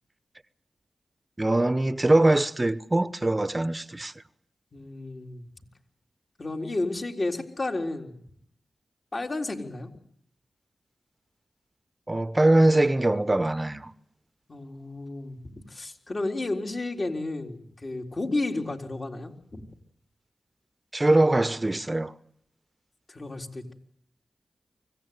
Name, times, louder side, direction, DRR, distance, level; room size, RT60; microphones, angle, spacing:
voice 1, 1.4-4.1 12.1-13.9 20.9-22.1, right 2 dB, 30° right, 0.9 m, -22 dB
voice 2, 4.7-5.5 6.4-8.2 9.1-9.9 14.5-19.7 23.1-23.7, left 2 dB, 50° left, 3.8 m, -32 dB
24.5 x 16.5 x 9.5 m
cardioid pair, 40°, 0 cm